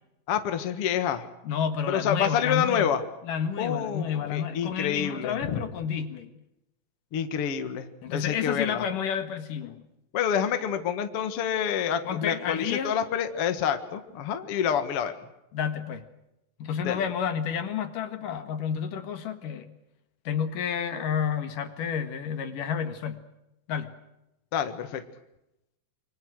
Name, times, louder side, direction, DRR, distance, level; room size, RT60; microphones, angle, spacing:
voice 1, 0.3-1.3 1.9-3.0 3.6-5.6 7.1-8.8 10.1-15.1 16.8-17.0 24.5-25.0, left 8 dB, 50° left, 8 dB, 2.2 m, -28 dB
voice 2, 1.4-2.9 3.2-6.3 8.0-9.8 12.0-12.9 15.5-16.0 16.6-19.7 20.2-23.2 23.7-23.9, left 7 dB, 65° left, 9 dB, 3.1 m, -30 dB
27.0 x 24.5 x 6.4 m, 0.89 s
omnidirectional pair, 4.2 m